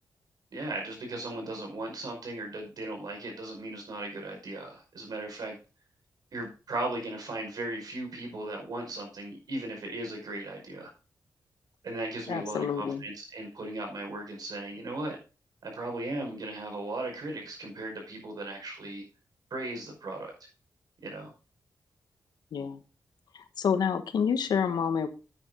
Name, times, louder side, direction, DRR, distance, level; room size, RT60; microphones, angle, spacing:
voice 1, 0.5-5.6 6.3-10.9 11.8-15.2 15.6-19.0 19.5-20.3 21.0-21.3, right 2 dB, 70° right, 2 dB, 5.4 m, -37 dB
voice 2, 12.3-13.0 22.5-22.8 23.6-25.1, left 7 dB, 85° left, 9 dB, 1.2 m, -28 dB
9.5 x 9.4 x 3.9 m, 0.33 s
cardioid pair, 90°, 7 cm